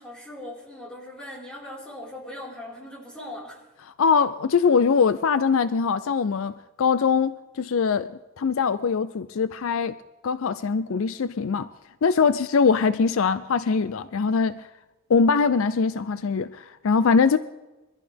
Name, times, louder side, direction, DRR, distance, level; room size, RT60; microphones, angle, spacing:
voice 1, 0.0-3.6, left 1 dB, 5° left, 4.7 m, -39 dB
voice 2, 4.0-8.1 8.4-9.9 10.2-11.7 12.0-14.7 15.1-17.4, left 5 dB, 65° left, 0.4 m, -22 dB
23.0 x 14.5 x 3.5 m
head